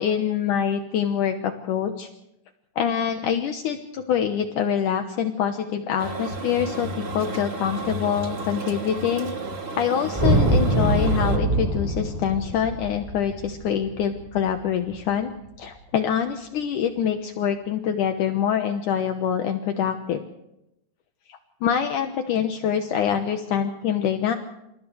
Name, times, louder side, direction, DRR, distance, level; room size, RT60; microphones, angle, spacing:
voice 1, 0.0-2.1 2.8-9.3 9.8-15.3 15.6-20.2 21.3-24.4, left 8 dB, 70° left, 5 dB, 2.5 m, -25 dB
sound 1, 6.0-11.4, right 3 dB, 40° right, 0.9 m, -33 dB
synthesized thunder, 10.1-14.5, right 1 dB, 10° right, 6.3 m, -23 dB
28.5 x 28.0 x 3.4 m, 0.84 s
omnidirectional pair, 4.0 m